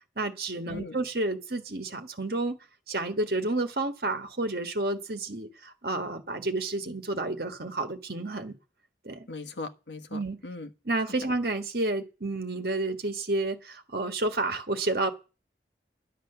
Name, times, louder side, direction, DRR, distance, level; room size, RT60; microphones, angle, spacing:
voice 1, 0.2-2.6 2.9-8.5 9.0-9.3 10.1-10.4 10.8-15.1, right 2 dB, 55° right, 1.6 m, -30 dB
voice 2, 9.3-10.7, left 3 dB, 85° left, 1.4 m, -39 dB
11.5 x 10.0 x 6.8 m
head